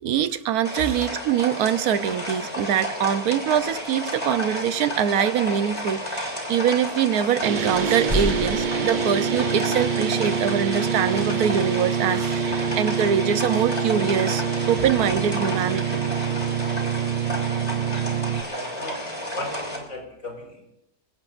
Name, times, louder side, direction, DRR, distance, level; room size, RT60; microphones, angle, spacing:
voice 1, 0.0-16.1, right 9 dB, 90° right, 12 dB, 1.3 m, -24 dB
sound 1, 0.6-19.8, left 1 dB, 20° left, 3.1 m, -32 dB
sound 2, 7.4-18.4, right 7 dB, 55° right, 0.5 m, -26 dB
sound 3, 7.7-8.9, equal, 20° right, 2.1 m, -29 dB
voice 2, 18.4-20.7, left 1 dB, 60° left, 0 dB, 4.6 m, -37 dB
27.5 x 17.5 x 2.5 m, 0.82 s
omnidirectional pair, 1.5 m